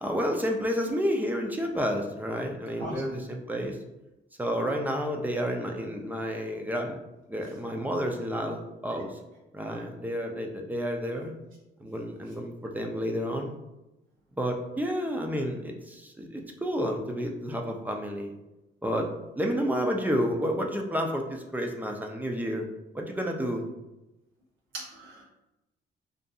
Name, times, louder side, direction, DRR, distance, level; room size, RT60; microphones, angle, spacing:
voice 1, 0.0-3.8 4.4-7.0 7.3-9.1 9.5-11.3 11.8-13.6 14.4-18.3 18.8-19.1 19.4-22.7 22.9-23.6, equal, 10° right, 2 dB, 0.4 m, -30 dB
voice 2, 2.8-3.2 24.7-25.3, right 1 dB, 80° right, -4 dB, 0.8 m, -38 dB
2.6 x 2.5 x 2.3 m, 0.97 s
cardioid pair, 90°, 20 cm